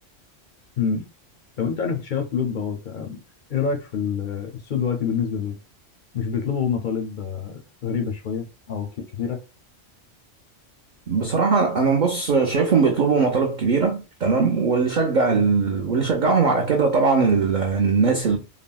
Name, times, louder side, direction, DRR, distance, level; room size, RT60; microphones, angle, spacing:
voice 1, 1.6-3.2 3.5-5.6 6.1-8.9 9.2-9.4, left 6 dB, 60° left, 0.5 m, -26 dB
voice 2, 11.1-18.4, right 4 dB, 60° right, 0.5 m, -20 dB
3.4 x 2.0 x 2.3 m
omnidirectional pair, 1.3 m